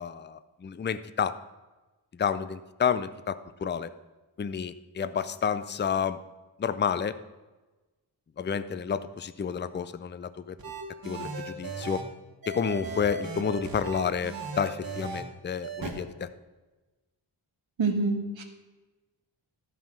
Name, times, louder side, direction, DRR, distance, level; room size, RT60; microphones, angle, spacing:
voice 1, 0.0-1.3 2.2-3.9 4.4-6.2 6.6-7.1 8.4-10.5 11.0-12.0 12.5-16.3, left 7 dB, 25° left, 13 dB, 0.4 m, -30 dB
sound 1, 10.6-12.0 12.4-15.2 15.6-15.9, right 3 dB, 50° right, 1.7 m, -37 dB
voice 2, 17.8-18.4, right 3 dB, 90° right, 5 dB, 1.4 m, -26 dB
12.5 x 5.7 x 6.1 m, 1.2 s
wide cardioid pair, 95°, 45 cm